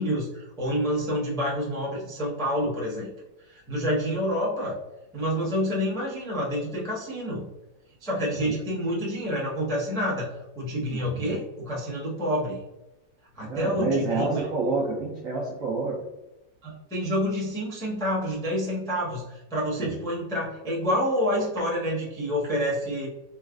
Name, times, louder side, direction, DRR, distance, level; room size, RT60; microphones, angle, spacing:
voice 1, 0.0-3.1 3.4-4.8 5.1-7.5 8.0-12.6 13.3-14.5 16.6-23.1, equal, 5° left, -6 dB, 0.3 m, -28 dB
voice 2, 10.9-11.4 13.4-16.0 19.8-19.9, right 3 dB, 70° right, -4 dB, 0.8 m, -28 dB
3.9 x 2.4 x 2.4 m, 0.97 s
omnidirectional pair, 2.0 m